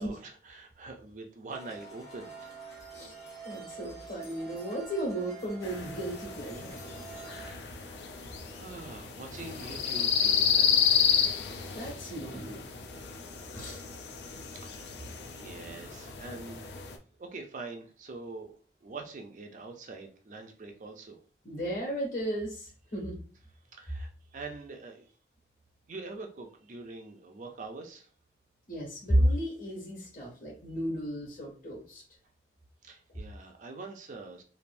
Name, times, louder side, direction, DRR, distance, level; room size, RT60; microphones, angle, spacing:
voice 1, 0.0-2.5 7.1-11.8 14.5-16.7 17.2-18.6 18.8-21.2 23.7-25.1 25.9-28.1 32.8-34.4, right 3 dB, 45° right, 3 dB, 0.4 m, -45 dB
sound 1, 1.5-7.5, right 5 dB, 20° left, 0.8 m, -46 dB
voice 2, 3.4-6.7 11.7-12.6 13.5-13.8 21.4-23.2 28.7-32.0, equal, 50° left, -3 dB, 1.5 m, -33 dB
sound 2, 5.6-17.0, left 7 dB, 70° left, 0.4 m, -31 dB
3.3 x 2.5 x 2.5 m, 0.40 s
head